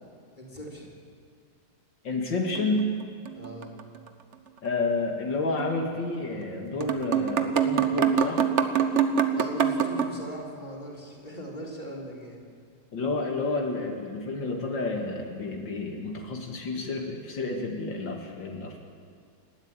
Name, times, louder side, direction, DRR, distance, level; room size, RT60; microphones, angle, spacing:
voice 1, 0.4-0.9 3.3-3.8 9.3-12.4, equal, 25° left, -2 dB, 4.0 m, -40 dB
voice 2, 2.0-2.9 4.6-8.4 12.9-18.8, left 3 dB, 80° left, 1 dB, 2.8 m, -30 dB
sound 1, 2.5-3.8 4.1-4.2 5.6-5.8 6.4-6.5 6.8-10.1, right 7 dB, 45° right, 1.3 m, -25 dB
29.5 x 12.5 x 9.1 m, 2.3 s
omnidirectional pair, 2.0 m